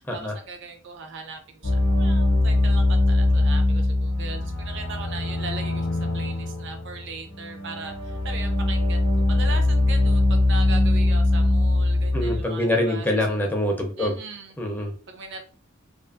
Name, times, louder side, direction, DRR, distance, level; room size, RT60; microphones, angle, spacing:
voice 1, 0.0-13.1 14.0-14.6 15.1-15.4, right 4 dB, 60° right, 6 dB, 0.6 m, -39 dB
sound 1, 1.6-12.4, left 2 dB, 65° left, 0.7 m, -22 dB
voice 2, 12.1-14.2 14.6-14.9, left 1 dB, 10° left, 1 dB, 0.4 m, -25 dB
2.4 x 2.4 x 2.4 m, 0.39 s
head